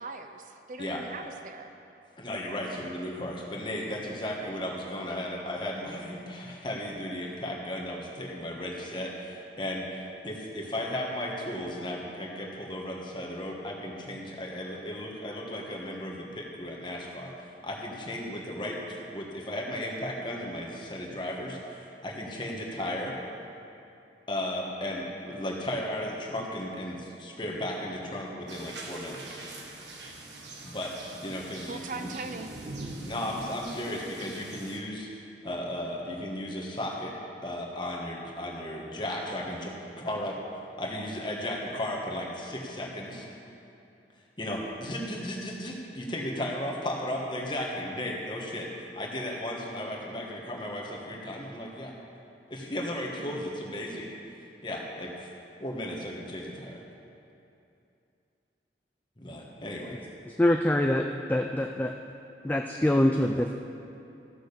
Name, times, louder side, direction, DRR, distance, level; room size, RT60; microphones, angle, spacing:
voice 1, 0.0-1.8 31.7-32.6, right 3 dB, 45° right, 7 dB, 0.5 m, -40 dB
voice 2, 2.2-17.3 17.6-23.1 24.3-29.4 30.6-30.9 31.2-32.1 33.0-37.1 37.4-39.7 40.0-40.3 40.8-43.3 44.4-51.9 52.5-54.1 54.6-55.3 55.6-56.8 59.2-60.0, left 1 dB, 25° left, -1 dB, 1.4 m, -35 dB
sound 1, 28.5-34.8, right 2 dB, 80° right, 1.4 m, -43 dB
voice 3, 60.3-61.9 62.4-63.5, left 1 dB, 10° left, 3 dB, 0.3 m, -25 dB
14.0 x 6.4 x 6.7 m, 2.7 s
head